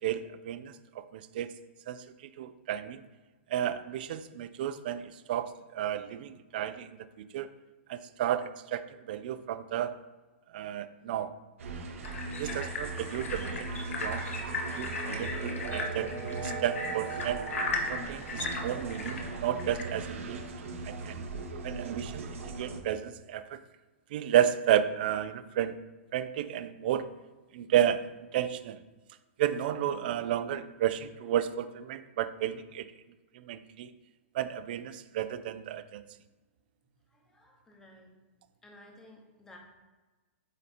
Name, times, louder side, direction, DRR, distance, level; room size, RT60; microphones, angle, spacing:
voice 1, 0.0-0.7 1.1-1.5 1.9-2.0 2.4-3.0 3.5-6.9 7.2-7.5 7.9-10.0 10.5-11.3 12.3-14.4 14.7-16.1 16.4-17.4 17.9-21.2 21.6-23.6 24.1-25.8 26.1-27.1 27.5-28.8 29.4-32.9 33.3-33.9 34.3-36.0, right 10 dB, 45° right, 12 dB, 0.4 m, -32 dB
sound 1, 11.6-22.8, right 4 dB, 75° right, 1.1 m, -38 dB
sound 2, 12.0-20.1, left 3 dB, 90° left, 1.1 m, -37 dB
voice 2, 37.1-38.1 38.6-39.6, left 1 dB, 5° left, 0 dB, 0.9 m, -55 dB
8.0 x 2.8 x 4.2 m, 1.2 s
hypercardioid pair, 165°, 7 cm